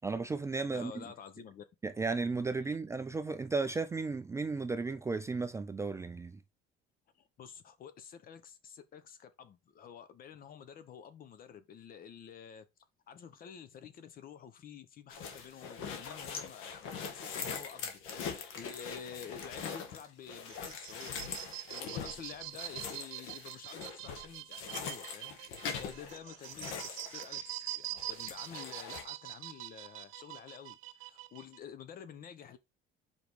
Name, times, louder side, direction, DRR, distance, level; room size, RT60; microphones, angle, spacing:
voice 1, 0.0-1.0 1.8-6.4, right 4 dB, 15° right, 0.4 m, -34 dB
voice 2, 0.7-1.6 7.1-12.7 13.1-32.6, left 8 dB, 45° left, 1.0 m, -50 dB
sound 1, 15.1-27.7 28.0-29.0, left 6 dB, 75° left, 1.6 m, -42 dB
sound 2, 20.3-31.6, right 16 dB, 85° right, 0.6 m, -44 dB
5.3 x 5.0 x 4.7 m
cardioid pair, 145°, 21 cm